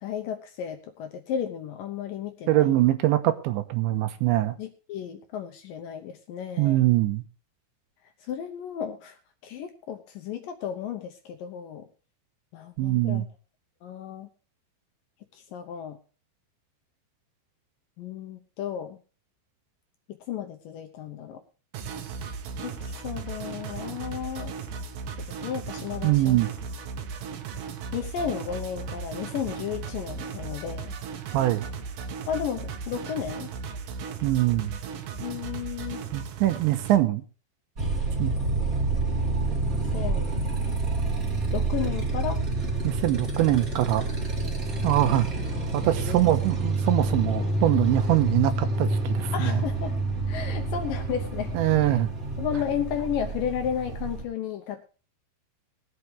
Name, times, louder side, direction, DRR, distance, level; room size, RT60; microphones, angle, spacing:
voice 1, 0.0-2.8 4.6-6.9 8.3-9.2 9.4-11.9 12.5-13.2 13.8-14.3 15.3-16.0 18.0-19.0 20.3-21.4 22.6-24.6 25.2-26.4 27.9-31.0 32.3-33.5 35.2-36.1 38.9-39.0 39.6-40.5 41.5-42.5 45.0-45.1 45.8-46.2 49.3-50.0 50.3-51.5 51.8-52.0 52.4-54.8, left 8 dB, 75° left, 2.0 m, -33 dB
voice 2, 2.5-4.6 6.6-7.2 12.8-13.3 26.0-26.5 31.3-31.7 34.2-34.8 36.1-37.2 38.2-38.3 42.8-44.1 44.8-45.3 45.7-49.6 51.6-52.1, right 15 dB, 85° right, 3.3 m, -23 dB
sound 1, 21.7-37.0, right 5 dB, 60° right, 2.5 m, -36 dB
Motorcycle, 37.8-54.2, right 2 dB, 25° right, 2.2 m, -28 dB
21.0 x 8.4 x 3.3 m
omnidirectional pair, 5.1 m